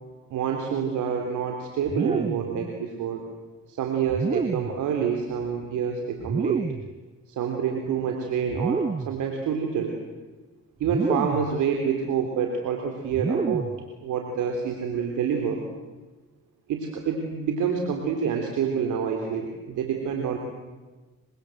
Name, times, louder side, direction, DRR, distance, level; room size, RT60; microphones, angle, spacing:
voice 1, 0.3-3.2 3.7-6.6 7.3-10.0 10.8-13.7 14.0-15.6 16.7-20.4, right 7 dB, 85° right, 2 dB, 3.7 m, -27 dB
sound 1, 1.9-2.6 4.1-4.8 6.2-6.9 8.5-9.2 10.8-11.6 13.1-13.8, right 4 dB, 20° right, 0.8 m, -29 dB
27.5 x 25.5 x 8.0 m, 1.2 s
cardioid pair, 90°, 30 cm